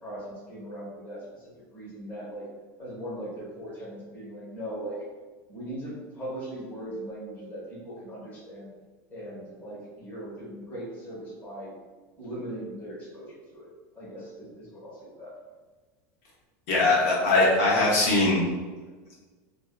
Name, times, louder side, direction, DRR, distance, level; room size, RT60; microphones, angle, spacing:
voice 1, 0.0-1.4 1.7-2.4 2.8-5.0 5.5-8.7 9.1-11.7 12.2-13.7 13.9-15.3, right 1 dB, 20° left, -7 dB, 1.0 m, -39 dB
voice 2, 16.7-18.4, left 2 dB, 70° left, -5 dB, 0.8 m, -21 dB
2.6 x 2.2 x 2.3 m, 1.4 s
supercardioid pair, 160°, 9 cm